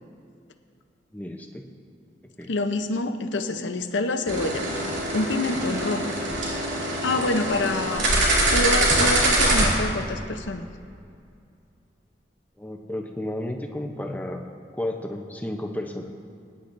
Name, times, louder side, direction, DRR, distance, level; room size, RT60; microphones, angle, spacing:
voice 1, 1.1-1.7 2.4-2.5 12.6-14.4 14.7-16.1, left 1 dB, 10° left, 3 dB, 0.6 m, -32 dB
voice 2, 2.5-4.6 5.1-6.2 7.0-8.1 8.5-10.6, left 2 dB, 85° left, 8 dB, 0.7 m, -26 dB
sound 1, 4.3-9.7, right 1 dB, 80° right, 2.7 m, -23 dB
23.0 x 10.0 x 2.6 m, 2.4 s
head